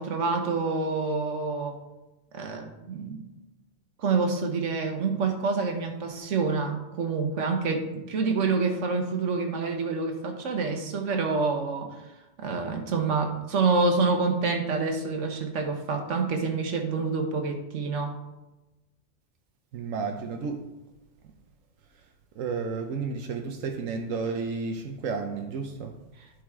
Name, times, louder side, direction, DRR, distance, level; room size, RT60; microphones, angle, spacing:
voice 1, 0.0-1.8 2.3-3.3 4.0-12.0 12.4-18.2, right 4 dB, 70° right, 4 dB, 1.4 m, -27 dB
voice 2, 19.7-20.6 22.4-25.9, right 5 dB, 90° right, 4 dB, 1.1 m, -32 dB
12.0 x 5.0 x 3.6 m, 1.0 s
omnidirectional pair, 1.3 m